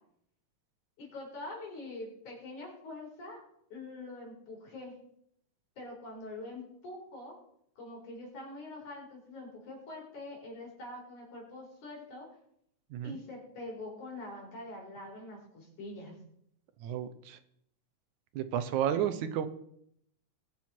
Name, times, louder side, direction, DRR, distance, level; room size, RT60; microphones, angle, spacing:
voice 1, 1.0-3.4 3.7-4.9 5.8-7.3 7.8-12.3 13.0-16.1, left 2 dB, 80° left, -2 dB, 6.0 m, -44 dB
voice 2, 16.8-17.4 18.3-19.5, right 10 dB, 80° right, 11 dB, 2.3 m, -32 dB
21.5 x 7.7 x 4.5 m, 0.71 s
omnidirectional pair, 3.4 m